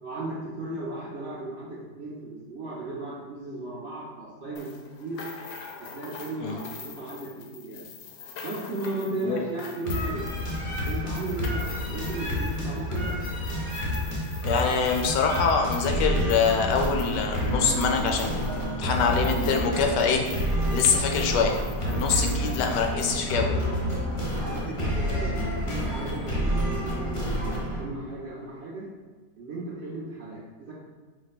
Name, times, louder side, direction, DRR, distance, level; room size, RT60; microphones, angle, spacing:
voice 1, 0.0-4.7 5.0-5.2 5.9-7.8 8.4-10.2 10.9-13.1 24.3-28.9 29.4-30.7, right 2 dB, 60° right, -6 dB, 0.7 m, -35 dB
sound 1, 4.6-19.7 20.0-23.2, left 6 dB, 70° left, 0.9 m, -45 dB
sound 2, 9.8-27.8, equal, 50° left, 0.3 m, -29 dB
voice 2, 14.4-20.2 20.7-21.5 21.9-23.5, left 5 dB, 85° left, 3 dB, 1.2 m, -25 dB
4.5 x 2.1 x 4.1 m, 1.3 s
omnidirectional pair, 1.8 m